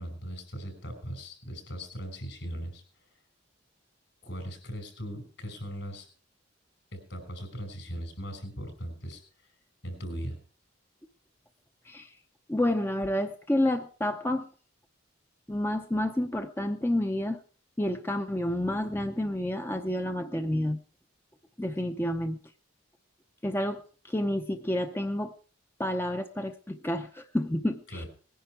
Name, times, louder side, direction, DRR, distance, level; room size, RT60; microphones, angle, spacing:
voice 1, 0.0-2.8 4.2-6.1 6.9-9.5 9.8-10.4 27.9-28.1, equal, 65° left, 7 dB, 5.6 m, -39 dB
voice 2, 12.5-14.5 15.5-17.4 17.8-20.8 21.6-22.4 23.4-25.3 25.8-28.0, left 1 dB, 10° left, 6 dB, 0.6 m, -29 dB
19.5 x 10.5 x 4.7 m, 0.40 s
head